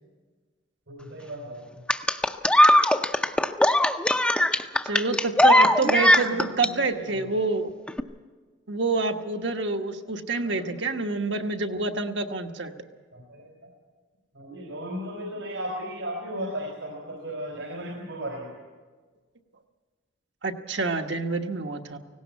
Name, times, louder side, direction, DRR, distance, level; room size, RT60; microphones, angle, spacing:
voice 1, 0.9-1.8 5.4-5.7 6.0-7.3 10.4-11.4 13.1-13.7 14.3-18.5, equal, 85° right, 0 dB, 3.9 m, -36 dB
sound 1, 1.9-6.7 7.9-8.0, left 1 dB, 5° left, 0.6 m, -19 dB
voice 2, 4.8-7.7 8.7-12.7 20.4-22.0, right 3 dB, 65° right, 5 dB, 1.2 m, -27 dB
18.0 x 17.5 x 8.3 m, 1.4 s
head